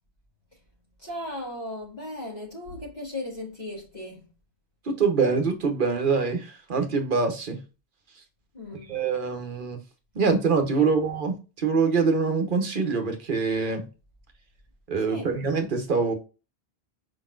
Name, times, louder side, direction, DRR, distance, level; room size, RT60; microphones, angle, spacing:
voice 1, 1.0-4.3 8.5-9.0 10.8-11.0 15.1-15.3, left 1 dB, 40° left, 2.2 m, -37 dB
voice 2, 4.9-7.6 8.9-9.8 10.1-13.9 14.9-16.1, right 5 dB, 55° right, 1.0 m, -24 dB
5.0 x 3.9 x 2.4 m
omnidirectional pair, 1.1 m